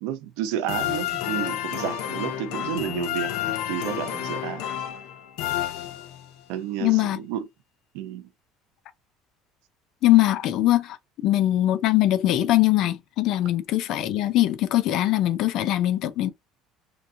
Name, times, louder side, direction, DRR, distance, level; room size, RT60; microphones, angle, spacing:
voice 1, 0.0-4.6 6.5-7.5 7.9-8.3, right 10 dB, 85° right, 0.6 m, -31 dB
sound 1, 0.7-6.4, left 11 dB, 80° left, 0.8 m, -30 dB
voice 2, 6.8-7.2 10.0-11.0 11.2-16.3, left 14 dB, 55° left, 0.5 m, -21 dB
2.9 x 2.7 x 2.5 m
cardioid pair, 150°, 0 cm